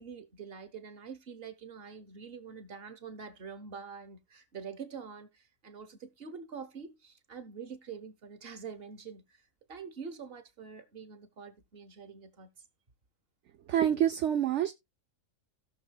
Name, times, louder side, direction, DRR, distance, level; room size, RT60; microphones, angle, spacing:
voice 1, 0.0-9.4 9.7-12.5, right 6 dB, 45° right, 1.4 m, -45 dB
voice 2, 13.7-14.7, right 10 dB, 65° right, 1.0 m, -27 dB
17.0 x 6.3 x 2.4 m
omnidirectional pair, 1.4 m